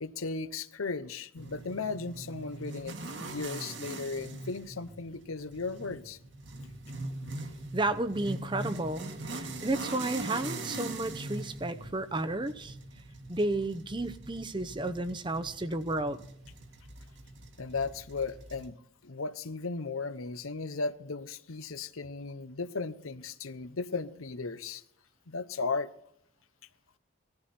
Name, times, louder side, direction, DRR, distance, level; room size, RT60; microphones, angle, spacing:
voice 1, 0.0-6.2 17.6-18.8 19.0-24.8 25.3-25.9, left 4 dB, 85° left, 0.8 m, -36 dB
sound 1, 1.4-18.7, right 2 dB, 60° right, 1.7 m, -42 dB
voice 2, 7.7-12.7 13.3-16.2, right 2 dB, 25° right, 0.7 m, -32 dB
18.0 x 14.5 x 4.3 m
head